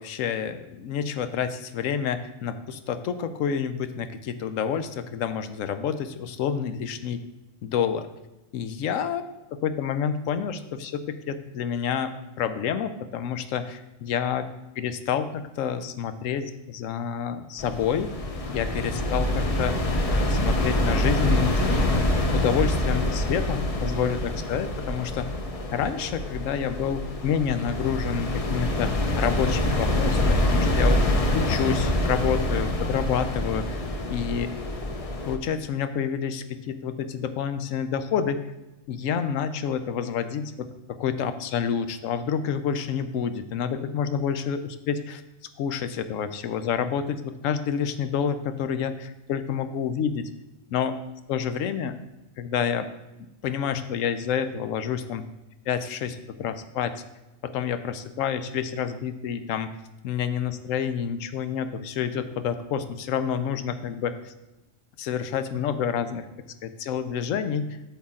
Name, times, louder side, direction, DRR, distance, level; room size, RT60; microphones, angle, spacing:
voice 1, 0.0-7.2 7.6-8.1 8.5-9.2 9.5-14.5 14.8-18.1 18.5-25.3 25.7-31.0 31.3-33.7 34.1-34.5 35.3-38.4 38.9-40.7 41.0-45.2 45.6-50.3 50.7-51.0 51.3-52.0 52.4-52.9 53.4-55.3 55.7-56.9 57.4-59.7 60.0-64.3 65.0-66.3 66.6-67.7, left 7 dB, 75° left, 10 dB, 1.0 m, -28 dB
sound 1, 17.6-35.4, left 1 dB, 35° left, 0.6 m, -25 dB
8.3 x 5.8 x 3.7 m, 1.0 s
omnidirectional pair, 1.4 m